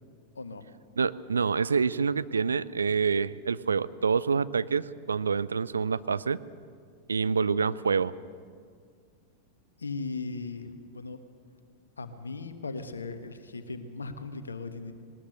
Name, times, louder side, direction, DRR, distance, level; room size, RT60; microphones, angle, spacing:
voice 1, 0.3-0.7 9.8-11.2 12.0-14.9, left 3 dB, 75° left, 10 dB, 1.3 m, -38 dB
voice 2, 1.0-6.4 7.1-8.1, right 5 dB, 75° right, 16 dB, 0.5 m, -27 dB
20.0 x 19.5 x 6.7 m, 2.1 s
figure-of-eight pair, 90°, 0 cm